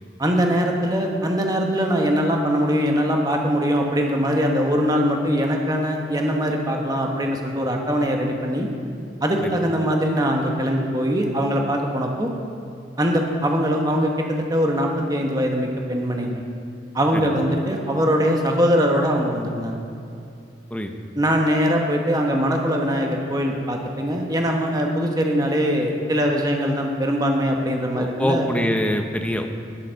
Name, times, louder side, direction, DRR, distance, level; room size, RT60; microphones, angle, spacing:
voice 1, 0.2-8.7 9.2-12.3 13.0-16.4 16.9-19.7 21.2-28.5, equal, 20° right, 1 dB, 1.2 m, -22 dB
voice 2, 28.0-29.5, left 1 dB, 5° left, 5 dB, 0.7 m, -24 dB
11.0 x 8.1 x 6.4 m, 2.5 s
head